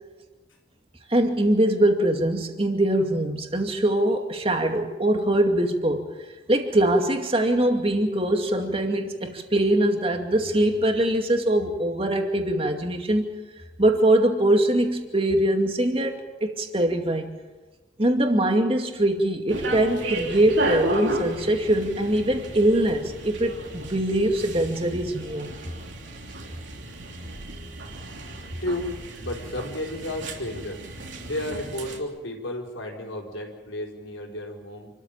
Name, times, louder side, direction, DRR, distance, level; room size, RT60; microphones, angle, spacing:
voice 1, 1.1-6.1 6.5-13.3 13.8-17.3 18.0-25.6, right 1 dB, 30° right, 4 dB, 2.4 m, -22 dB
sound 1, 19.5-32.0, right 1 dB, 70° right, 3.5 m, -33 dB
voice 2, 28.6-30.8 31.2-34.9, left 1 dB, 85° left, 0 dB, 4.5 m, -33 dB
28.0 x 13.5 x 9.0 m, 1.2 s
head